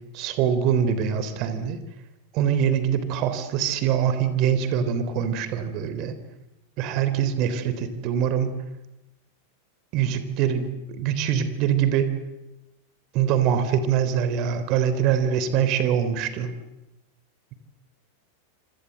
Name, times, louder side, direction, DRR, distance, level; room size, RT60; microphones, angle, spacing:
voice 1, 0.1-1.8 2.3-6.2 6.8-8.6 9.9-12.1 13.1-16.5, right 8 dB, 40° right, 11 dB, 3.5 m, -24 dB
26.5 x 26.0 x 8.0 m, 0.96 s
figure-of-eight pair, 90°, 0 cm